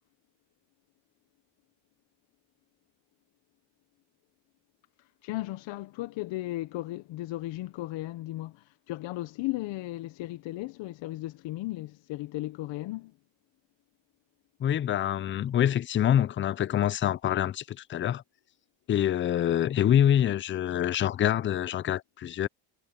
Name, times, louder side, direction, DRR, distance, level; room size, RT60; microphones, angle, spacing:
voice 1, 5.2-13.1, left 17 dB, 65° left, 1.0 m, -35 dB
voice 2, 14.6-18.2 18.9-22.5, left 10 dB, 25° left, 0.4 m, -26 dB
cardioid pair, 105°, 48 cm